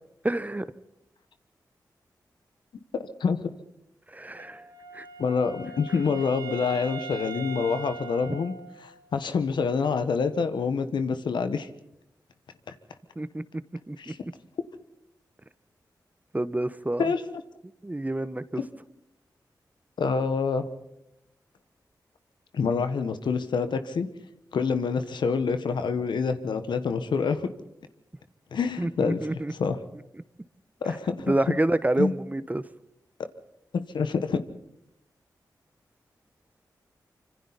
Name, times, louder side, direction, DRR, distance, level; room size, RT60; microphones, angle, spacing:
voice 1, 0.2-0.6 4.1-4.6 4.9-5.0 8.3-8.4 13.2-13.4 13.9-14.1 16.3-17.1 17.8-18.6 28.8-29.5 31.3-32.6, right 1 dB, 20° right, 14 dB, 1.0 m, -28 dB
Wind instrument woodwind instrument, 4.4-9.2, right 4 dB, 90° right, 2.8 m, -41 dB
voice 2, 5.2-8.5 8.8-11.7 14.0-14.2 17.0-17.2 18.5-18.6 20.0-20.7 22.5-24.1 24.5-27.5 28.5-29.8 30.8-31.3 32.0-32.1 33.7-34.4, left 5 dB, 85° left, 9 dB, 1.4 m, -27 dB
25.5 x 25.0 x 4.2 m, 0.83 s
cardioid pair, 50°, 8 cm